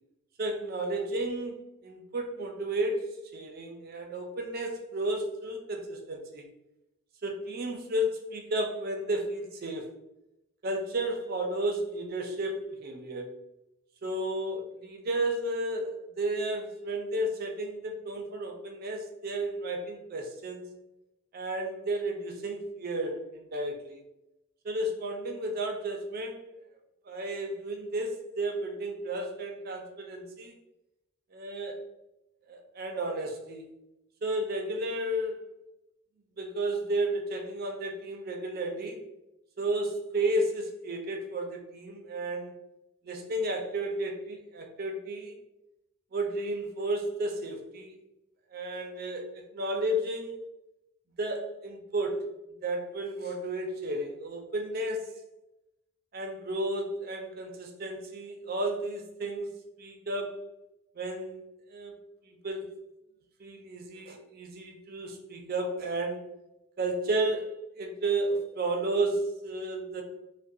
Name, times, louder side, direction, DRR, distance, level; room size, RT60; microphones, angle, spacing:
voice 1, 0.4-6.4 7.2-9.9 10.6-13.3 14.0-20.7 21.3-24.0 24.6-26.4 27.1-30.5 31.3-31.8 32.5-33.7 34.2-35.4 36.4-39.0 39.6-42.5 43.0-45.3 46.1-48.0 48.5-50.4 51.2-52.2 52.6-55.1 56.1-60.4 61.0-61.4 61.7-61.9 62.2-62.7 63.4-66.3 66.8-70.0, right 1 dB, 45° right, 2 dB, 0.4 m, -33 dB
2.3 x 2.1 x 2.6 m, 0.90 s
head